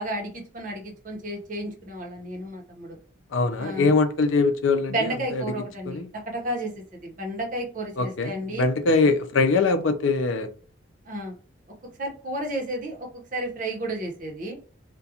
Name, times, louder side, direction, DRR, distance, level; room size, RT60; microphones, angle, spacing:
voice 1, 0.0-3.0 3.6-3.9 4.9-8.6 11.1-11.3 12.0-14.6, right 1 dB, 45° right, 0.8 m, -32 dB
voice 2, 3.3-5.4 5.9-6.1 8.0-10.5, left 3 dB, 85° left, 0.5 m, -22 dB
2.4 x 2.2 x 2.7 m
head